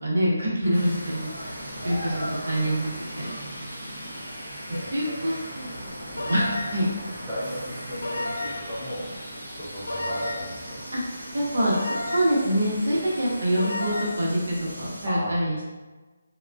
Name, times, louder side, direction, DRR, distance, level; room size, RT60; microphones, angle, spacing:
voice 1, 0.0-1.3 1.8-3.4 4.9-5.7 6.1-6.8 10.9-11.0 11.3-15.7, equal, 70° right, -5 dB, 0.9 m, -25 dB
sound 1, 0.6-15.1, left 1 dB, 40° left, 1.0 m, -44 dB
sound 2, 0.7-15.1, equal, 45° right, 0.8 m, -39 dB
voice 2, 1.7-2.2 4.7-5.2 7.3-9.1 9.5-10.8 15.0-15.4, equal, ahead, -15 dB, 0.5 m, -35 dB
sound 3, 6.2-6.9 8.0-8.8 9.9-10.6 11.7-12.5 13.6-14.2, left 2 dB, 85° left, 0.4 m, -32 dB
2.2 x 2.2 x 2.5 m, 1.2 s
hypercardioid pair, 175°, 0 cm